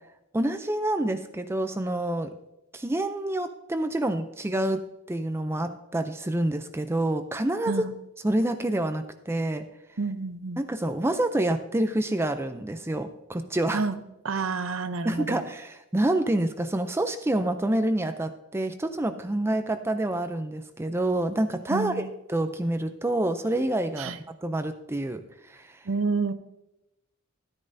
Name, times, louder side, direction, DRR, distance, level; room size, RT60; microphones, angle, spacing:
voice 1, 0.3-2.3 2.7-4.8 5.1-7.7 8.2-9.6 10.6-13.8 15.0-22.0 22.3-25.8, right 1 dB, 10° right, 9 dB, 0.4 m, -27 dB
voice 2, 10.0-10.6 13.7-14.0 14.2-15.4 21.7-22.1 24.0-24.2 25.9-26.3, right 4 dB, 65° right, 11 dB, 0.7 m, -29 dB
13.0 x 9.6 x 2.6 m, 0.91 s
head